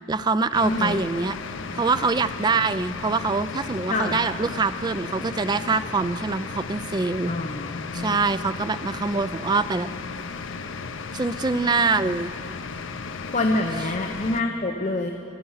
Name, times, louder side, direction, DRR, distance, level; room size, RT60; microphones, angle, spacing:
voice 1, 0.1-1.4 1.7-7.3 7.9-9.9 11.1-12.3, right 4 dB, 20° right, 13 dB, 0.3 m, -24 dB
sound 1, 0.5-14.4, left 5 dB, 80° left, 0.6 m, -35 dB
voice 2, 0.6-1.0 3.9-4.3 7.3-8.2 13.3-15.1, left 2 dB, 40° left, 3 dB, 0.8 m, -26 dB
24.5 x 8.5 x 5.6 m, 2.8 s
head